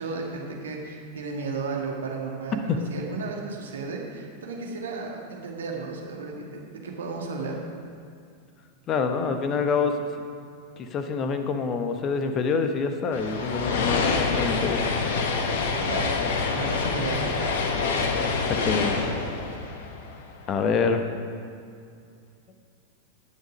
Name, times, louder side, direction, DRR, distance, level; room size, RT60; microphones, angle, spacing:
voice 1, 0.0-7.6 15.9-16.2 16.5-17.7, right 4 dB, 65° right, 0 dB, 1.8 m, -34 dB
voice 2, 8.9-9.9 10.8-14.8 18.4-19.1 20.5-21.0, left 5 dB, 30° left, 7 dB, 1.0 m, -26 dB
sound 1, 13.1-20.5, left 4 dB, 55° left, 1.1 m, -26 dB
18.0 x 6.5 x 5.1 m, 2.3 s
figure-of-eight pair, 90°, 0 cm